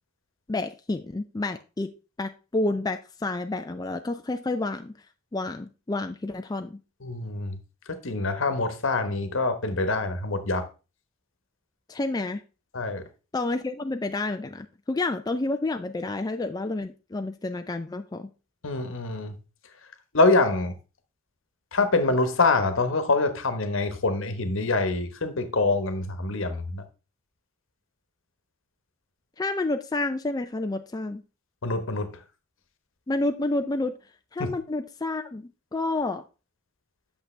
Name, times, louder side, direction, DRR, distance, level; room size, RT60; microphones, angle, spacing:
voice 1, 0.5-1.9 2.2-4.9 5.3-6.8 11.9-12.4 13.3-18.3 29.4-31.2 33.1-34.0 34.3-36.2, left 2 dB, 20° left, 0.4 m, -29 dB
voice 2, 7.0-7.6 7.9-10.7 12.7-13.0 18.6-19.3 20.1-20.8 21.7-26.8 31.6-32.2 34.4-34.5, left 3 dB, 65° left, 1.1 m, -25 dB
8.4 x 6.6 x 3.2 m
head